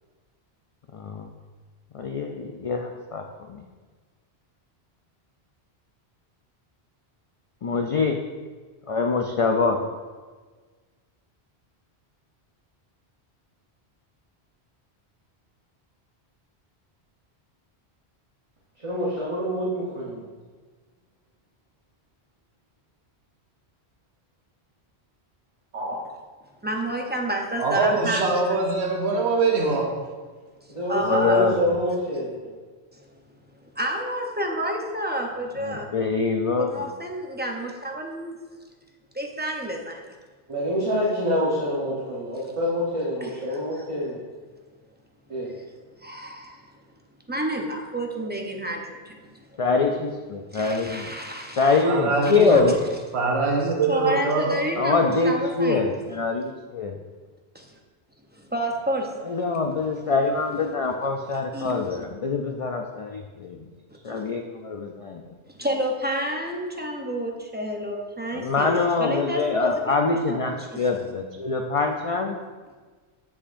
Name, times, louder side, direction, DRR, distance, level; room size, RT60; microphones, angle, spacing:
voice 1, 0.9-1.3 1.9-3.6 7.6-8.2 8.9-9.8 31.0-31.8 35.6-36.9 49.6-51.2 51.6-52.8 54.8-57.0 59.3-63.7 64.0-65.2 68.3-72.4, left 4 dB, 60° left, 3 dB, 0.3 m, -24 dB
voice 2, 18.8-20.2 25.7-26.0 30.7-32.3 40.5-44.2 45.3-45.5 46.3-46.4, equal, 30° right, -5 dB, 1.0 m, -27 dB
voice 3, 26.6-28.6 30.9-31.5 33.0-33.1 33.6-35.9 36.6-38.4 39.1-40.0 43.2-43.8 45.5-45.6 46.0-46.6 47.3-49.6 50.5-51.8 52.2-52.3 52.7-52.8 53.9-55.9 57.5-57.8 58.3-59.4 61.5-62.0 64.0-64.3 65.5-70.9, right 1 dB, 10° right, 1 dB, 0.5 m, -30 dB
voice 4, 27.6-30.0 51.8-52.7 53.1-54.6, right 3 dB, 85° right, 2 dB, 1.1 m, -23 dB
7.3 x 7.1 x 2.5 m, 1.4 s
omnidirectional pair, 1.1 m